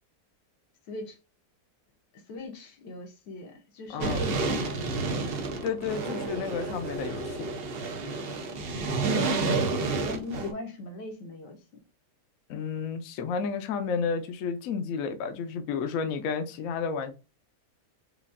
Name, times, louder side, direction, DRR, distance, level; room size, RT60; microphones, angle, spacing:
voice 1, 0.9-1.2 2.3-5.3 10.0-11.6, left 2 dB, 85° left, 1.6 m, -40 dB
voice 2, 3.9-4.2 5.6-7.5 12.5-17.1, left 6 dB, 65° left, 0.9 m, -31 dB
sound 1, 4.0-10.5, right 3 dB, 65° right, 0.5 m, -30 dB
5.0 x 2.4 x 2.4 m
omnidirectional pair, 1.8 m